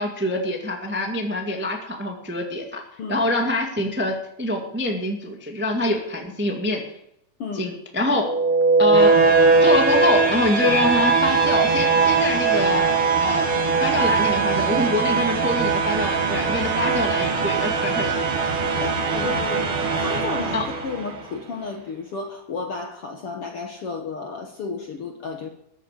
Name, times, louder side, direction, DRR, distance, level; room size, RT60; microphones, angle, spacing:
voice 1, 0.0-2.8 3.1-6.8 7.5-8.3 8.8-9.3 9.6-12.9 13.2-13.5 13.8-18.2 18.7-18.9 20.5-20.6, left 1 dB, 10° right, 2 dB, 0.6 m, -25 dB
sound 1, 8.2-21.2, right 4 dB, 45° right, 2.2 m, -20 dB
voice 2, 18.8-25.5, left 4 dB, 60° left, 3 dB, 1.5 m, -33 dB
14.5 x 8.5 x 8.3 m, 0.77 s
omnidirectional pair, 4.2 m